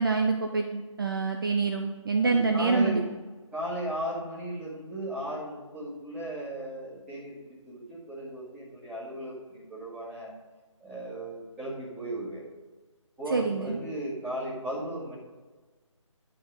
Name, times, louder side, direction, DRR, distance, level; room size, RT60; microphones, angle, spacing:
voice 1, 0.0-3.0 13.3-13.8, right 4 dB, 40° right, 3 dB, 0.6 m, -26 dB
voice 2, 2.2-3.1 3.5-10.3 10.8-12.4 13.2-15.2, right 1 dB, 5° right, -10 dB, 2.0 m, -36 dB
11.0 x 4.3 x 5.1 m, 1.3 s
figure-of-eight pair, 155°, 17 cm